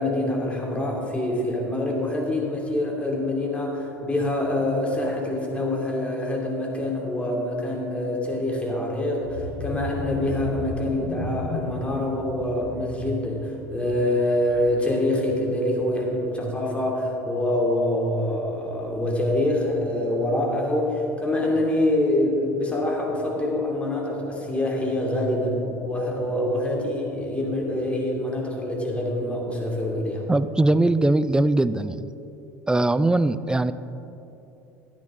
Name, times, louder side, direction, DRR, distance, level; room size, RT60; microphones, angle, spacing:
voice 1, 0.0-30.3, left 1 dB, 15° left, -1 dB, 2.7 m, -25 dB
sound 1, 9.2-14.9 15.3-15.6 15.9-16.0, left 1 dB, 70° left, 2.8 m, -35 dB
voice 2, 30.3-32.1 32.7-33.7, right 2 dB, 10° right, 14 dB, 0.4 m, -21 dB
13.0 x 9.8 x 3.8 m, 3.0 s
hypercardioid pair, 75°, 8 cm